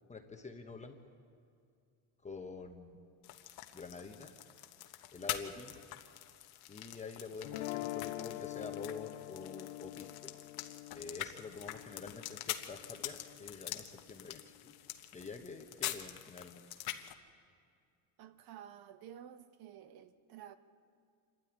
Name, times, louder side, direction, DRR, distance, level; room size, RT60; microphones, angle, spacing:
voice 1, 0.1-1.0 2.2-3.0 3.7-4.3 5.1-5.8 6.7-10.3 10.9-14.7 15.1-16.6, left 4 dB, 15° left, 1.1 m, -47 dB
sound 1, 3.2-17.1, left 13 dB, 60° left, 1.2 m, -45 dB
sound 2, 7.4-13.5, left 18 dB, 80° left, 0.7 m, -45 dB
voice 2, 18.2-20.6, right 10 dB, 60° right, 1.2 m, -52 dB
26.0 x 12.5 x 9.6 m
cardioid pair, 145°, 41 cm